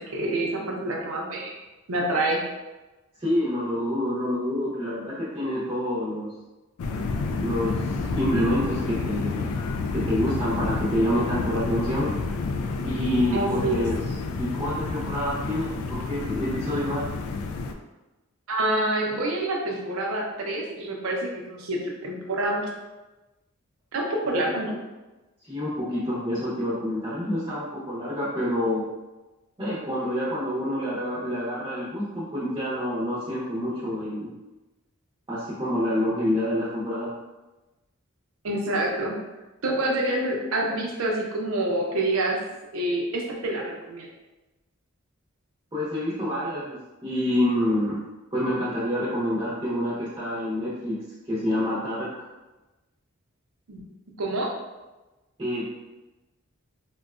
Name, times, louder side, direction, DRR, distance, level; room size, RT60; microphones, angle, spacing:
voice 1, 0.0-1.6 1.9-2.4 13.3-13.8 18.5-22.7 23.9-24.8 38.4-39.2 39.6-42.4 42.7-44.1 53.7-53.8 54.2-54.5, right 1 dB, 75° right, -1 dB, 0.6 m, -27 dB
voice 2, 3.2-6.3 7.4-9.5 9.9-12.1 12.8-14.0 14.3-17.1 25.5-28.8 29.6-34.3 35.3-37.1 45.7-48.0 48.3-51.0 51.2-52.3 55.4-55.7, left 1 dB, 20° right, -9 dB, 0.8 m, -27 dB
sound 1, 6.8-17.7, left 3 dB, 85° left, 0.3 m, -30 dB
3.9 x 2.1 x 2.4 m, 1.1 s
head